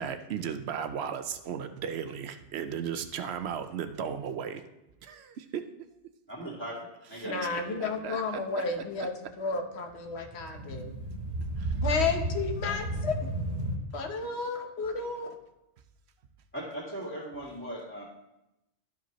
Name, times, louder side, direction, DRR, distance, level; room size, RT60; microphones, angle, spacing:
voice 1, 0.0-4.6 5.0-5.7 7.2-8.6 9.0-9.1 11.6-11.8, right 7 dB, 65° right, 9 dB, 0.8 m, -36 dB
voice 2, 6.3-6.8 7.1-8.0 16.5-18.0, right 1 dB, 10° left, -5 dB, 2.1 m, -39 dB
voice 3, 7.2-10.9 11.8-13.1 13.9-15.3, left 4 dB, 65° left, 4 dB, 1.2 m, -32 dB
sound 1, 10.1-13.8, right 2 dB, 40° right, 1.6 m, -33 dB
12.5 x 5.0 x 3.0 m, 0.90 s
omnidirectional pair, 1.2 m